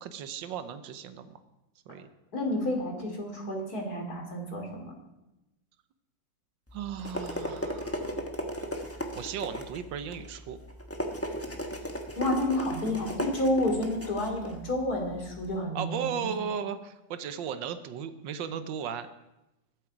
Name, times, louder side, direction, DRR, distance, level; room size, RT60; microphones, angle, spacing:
voice 1, 0.0-1.4 1.9-2.1 6.7-8.2 9.1-10.6 15.7-19.1, right 7 dB, 85° right, 10 dB, 1.5 m, -36 dB
voice 2, 2.3-4.9 12.2-16.3, left 1 dB, 55° left, 2 dB, 3.2 m, -30 dB
sound 1, 6.7-15.5, equal, 10° left, 0.9 m, -36 dB
21.5 x 7.9 x 4.9 m, 0.94 s
omnidirectional pair, 2.0 m